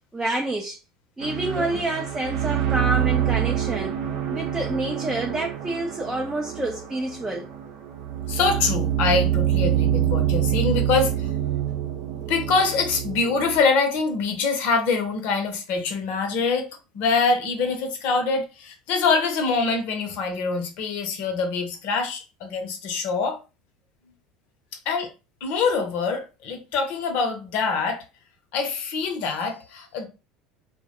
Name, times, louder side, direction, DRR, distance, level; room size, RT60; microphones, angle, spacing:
voice 1, 0.1-0.8 1.2-4.0 4.3-7.5, right 2 dB, 15° right, 0.4 m, -28 dB
sound 1, 1.2-13.6, right 11 dB, 70° right, 0.6 m, -26 dB
voice 2, 8.3-11.3 12.3-16.7 16.9-23.4 24.9-25.1 25.4-28.0 28.5-30.1, left 4 dB, 60° left, 0.7 m, -24 dB
2.2 x 2.1 x 2.8 m
hypercardioid pair, 80°, 3 cm